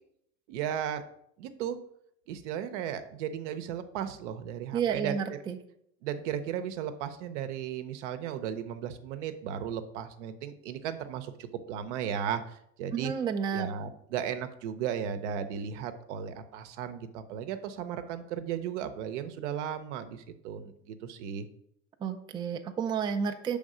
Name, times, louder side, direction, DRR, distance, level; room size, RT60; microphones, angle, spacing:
voice 1, 0.5-1.0 1.4-1.8 2.3-5.2 6.0-13.1 13.5-21.5, right 9 dB, 80° right, 9 dB, 0.7 m, -35 dB
voice 2, 4.7-5.6 12.9-13.7 22.0-23.6, right 7 dB, 15° right, 6 dB, 0.3 m, -31 dB
5.4 x 3.5 x 4.9 m, 0.72 s
supercardioid pair, 110°, 35 cm